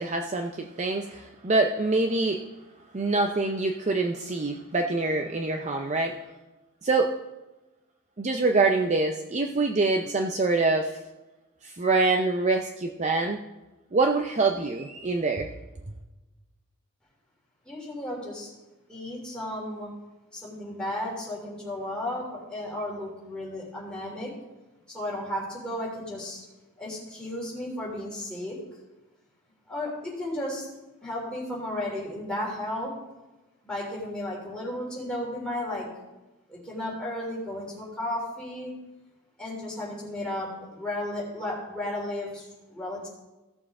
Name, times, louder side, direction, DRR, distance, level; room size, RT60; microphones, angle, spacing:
voice 1, 0.0-2.4 2.9-6.2 6.8-7.1 8.2-11.0 11.6-13.4 13.9-15.5, right 3 dB, 30° right, 4 dB, 0.5 m, -25 dB
voice 2, 17.6-18.5 18.9-19.9 20.3-24.3 24.9-26.4 26.8-28.6 29.7-30.7 31.0-32.9 33.6-35.9 36.5-38.7 39.4-43.1, left 1 dB, 5° left, -4 dB, 3.2 m, -34 dB
16.0 x 7.0 x 3.7 m, 1.1 s
head